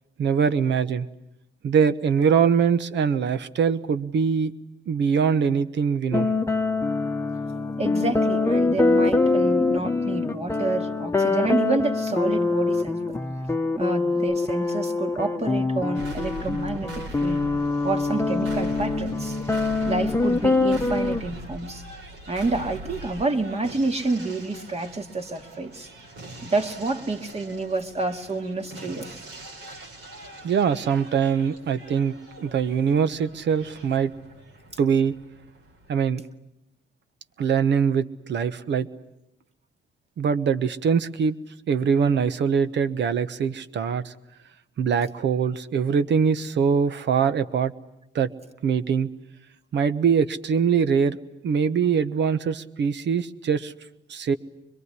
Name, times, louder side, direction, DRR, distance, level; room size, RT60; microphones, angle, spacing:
voice 1, 0.2-1.1 1.6-4.5 4.9-6.3 30.4-34.1 34.8-35.1 35.9-36.2 37.4-38.9 40.2-41.3 41.7-44.1 44.8-47.7 48.1-48.3 48.6-49.1 49.7-51.2 51.4-53.7 54.1-54.3, right 6 dB, 65° right, 13 dB, 1.2 m, -23 dB
sound 1, 6.1-21.2, left 3 dB, 15° left, 1.1 m, -24 dB
voice 2, 7.8-13.1 13.8-17.5 17.8-19.4 19.8-21.8 22.3-25.9 26.4-29.2, right 3 dB, 30° right, 5 dB, 2.1 m, -28 dB
sound 2, 15.9-35.9, right 1 dB, 85° right, 4.7 m, -42 dB
24.0 x 22.5 x 9.7 m, 0.85 s
cardioid pair, 90°, 20 cm